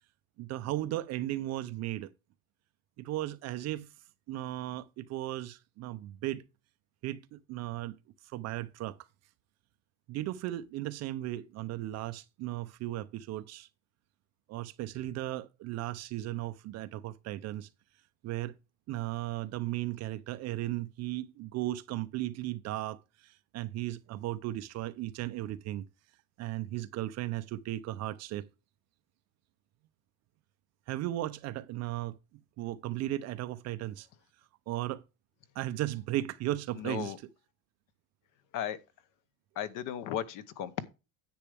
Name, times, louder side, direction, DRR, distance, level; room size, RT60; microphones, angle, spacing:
voice 1, 0.4-2.1 3.0-3.9 4.3-6.4 7.0-8.0 8.2-9.0 10.1-13.7 14.5-17.7 18.2-18.5 18.9-25.8 26.4-28.5 30.9-32.2 32.6-34.1 34.7-35.0 35.6-37.1, right 15 dB, 35° right, 0.6 m, -36 dB
voice 2, 36.7-37.2 38.5-38.8 39.5-40.9, left 10 dB, 45° left, 1.0 m, -35 dB
10.0 x 7.7 x 3.4 m
cardioid pair, 160°, 44 cm